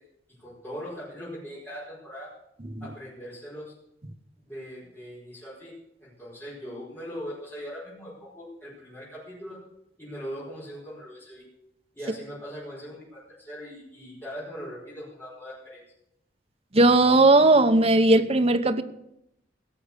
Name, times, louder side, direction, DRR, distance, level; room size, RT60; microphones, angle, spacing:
voice 1, 0.4-2.3 2.8-3.7 4.4-5.7 6.0-9.6 10.0-11.4 11.9-15.8, equal, 10° left, 5.1 m, -40 dB
voice 2, 16.7-18.8, right 2 dB, 35° right, 0.8 m, -18 dB
17.0 x 6.8 x 8.3 m
head